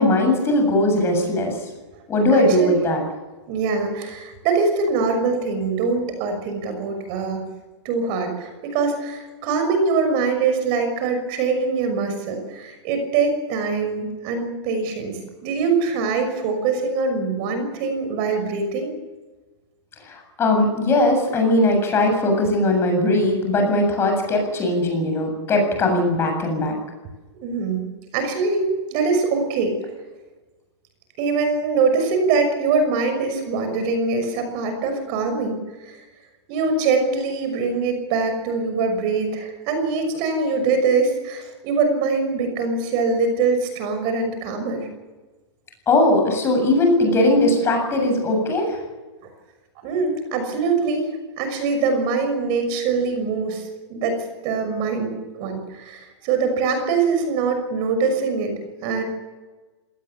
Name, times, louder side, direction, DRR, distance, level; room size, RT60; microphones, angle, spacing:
voice 1, 0.0-1.5 2.1-3.0 20.1-26.8 45.9-48.8, left 1 dB, 15° left, 3 dB, 7.5 m, -19 dB
voice 2, 2.3-2.8 3.5-7.4 7.8-18.9 27.4-27.9 28.1-29.8 31.2-35.6 35.8-36.0 36.5-44.9 49.8-51.1 51.4-54.2 54.4-58.5 58.8-59.0, right 4 dB, 35° right, 7 dB, 6.1 m, -23 dB
26.0 x 19.0 x 7.2 m, 1.2 s
hypercardioid pair, 150°, 15 cm